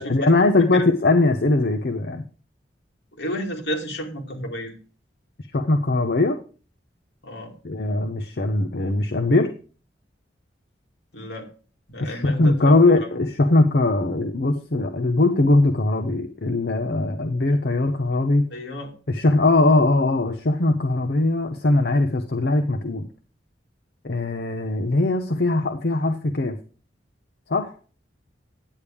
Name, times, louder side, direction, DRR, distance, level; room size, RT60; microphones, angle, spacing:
voice 1, 0.0-2.3 5.5-6.4 7.6-9.5 12.0-18.4 19.1-23.1 24.0-26.6 27.5-27.7, left 2 dB, 60° left, 5 dB, 0.7 m, -20 dB
voice 2, 3.1-4.7 7.2-7.5 11.1-11.5 11.9-13.1 18.5-18.9, equal, 80° left, 1 dB, 2.3 m, -32 dB
10.0 x 8.4 x 3.5 m, 0.38 s
head